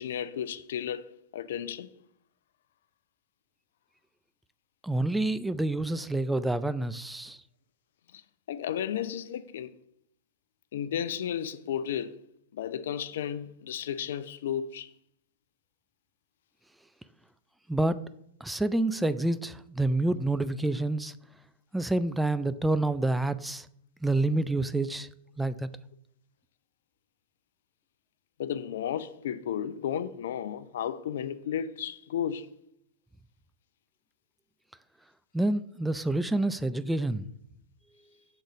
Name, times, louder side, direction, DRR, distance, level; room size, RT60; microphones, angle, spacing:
voice 1, 0.0-1.9 8.5-9.7 10.7-12.1 12.5-14.9 28.4-32.5, left 9 dB, 70° left, 0.4 m, -33 dB
voice 2, 4.8-7.4 17.7-18.0 18.4-21.1 21.7-23.7 24.0-25.1 25.4-25.7 35.3-37.3, right 2 dB, 5° right, 0.4 m, -28 dB
6.6 x 3.9 x 6.1 m
hypercardioid pair, 100°, 0 cm